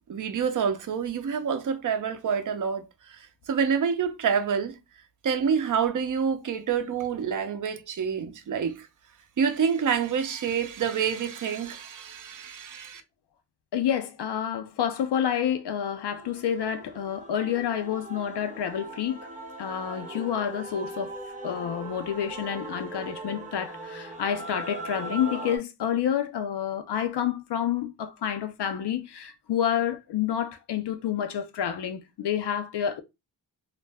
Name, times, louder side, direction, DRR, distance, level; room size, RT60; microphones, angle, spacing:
voice 1, 0.1-4.8 5.2-8.9 9.4-13.0, right 7 dB, 50° right, 0.6 m, -27 dB
voice 2, 13.7-19.3 19.6-21.2 21.4-33.0, left 9 dB, 75° left, 0.5 m, -29 dB
Male singing / Female singing / Musical instrument, 16.1-25.6, right 2 dB, 20° right, 0.8 m, -39 dB
2.4 x 2.1 x 3.3 m
cardioid pair, 80°, 41 cm